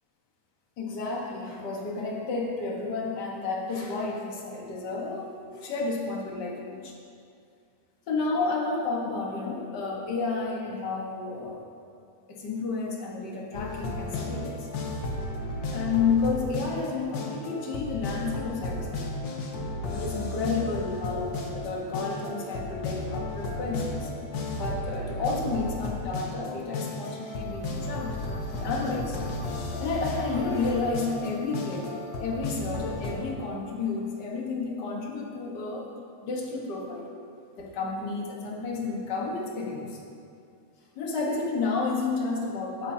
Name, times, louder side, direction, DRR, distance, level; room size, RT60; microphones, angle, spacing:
voice 1, 0.8-6.6 8.1-11.6 12.3-14.7 15.7-19.0 19.8-24.1 24.5-28.1 28.5-29.2 29.8-31.9 32.2-35.8 36.2-37.1 37.6-40.0 40.9-42.9, left 4 dB, 50° left, -2 dB, 1.3 m, -31 dB
sound 1, 13.5-33.2, left 2 dB, 85° left, 1.0 m, -34 dB
16.0 x 8.7 x 2.8 m, 2.4 s
omnidirectional pair, 3.7 m